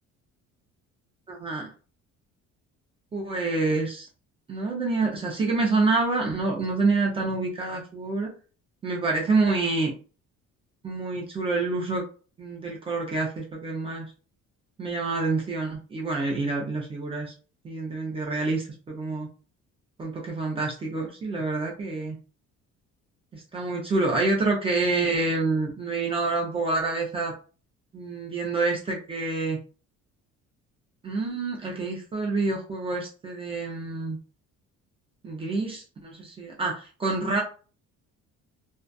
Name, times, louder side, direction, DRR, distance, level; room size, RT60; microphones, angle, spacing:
voice 1, 1.3-1.7 3.1-4.1 4.5-8.3 8.8-9.9 10.8-12.0 12.4-14.1 14.8-17.3 17.6-19.3 20.0-22.2 23.3-27.3 27.9-29.6 31.0-34.2 35.2-37.4, right 3 dB, 20° right, -2 dB, 0.4 m, -27 dB
2.5 x 2.2 x 2.2 m, 0.37 s
cardioid pair, 180°, 29 cm